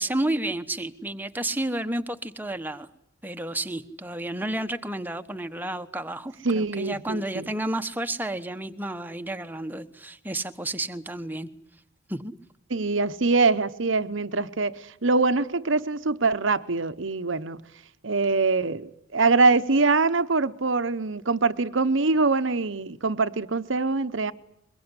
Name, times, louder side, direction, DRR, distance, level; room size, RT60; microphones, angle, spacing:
voice 1, 0.0-2.9 3.2-11.5 12.1-12.3, right 1 dB, 10° right, 1.1 m, -31 dB
voice 2, 6.4-7.5 12.7-17.6 18.0-24.3, right 3 dB, 70° right, 1.0 m, -24 dB
23.0 x 21.5 x 9.8 m
head